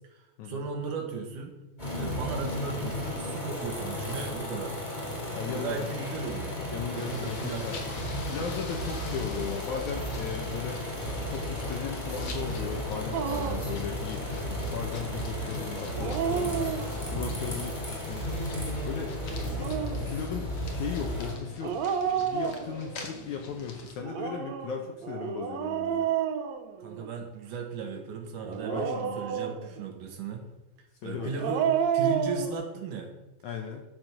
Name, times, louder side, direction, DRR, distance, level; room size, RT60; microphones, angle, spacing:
voice 1, 0.1-1.6 2.0-4.8 5.5-6.6 6.9-7.7 26.8-30.4 31.0-31.6 31.9-33.1, right 4 dB, 65° right, 3 dB, 2.7 m, -36 dB
sound 1, 1.8-21.3, left 1 dB, 15° left, 2.7 m, -34 dB
voice 2, 5.3-6.1 6.7-7.8 8.2-10.8 11.2-16.8 17.1-18.4 18.9-19.2 19.6-19.7 20.1-21.8 22.2-26.1 28.7-29.2 31.0-31.3 33.4-33.8, left 7 dB, 70° left, 3 dB, 1.9 m, -37 dB
sound 2, 6.9-23.9, left 3 dB, 55° left, 2.4 m, -45 dB
Dog, 13.1-13.8 15.8-17.2 19.3-20.1 21.6-23.1 24.0-27.2 28.5-29.9 31.2-32.5, right 8 dB, 90° right, 1.5 m, -30 dB
10.5 x 7.7 x 6.5 m, 1.0 s
omnidirectional pair, 4.3 m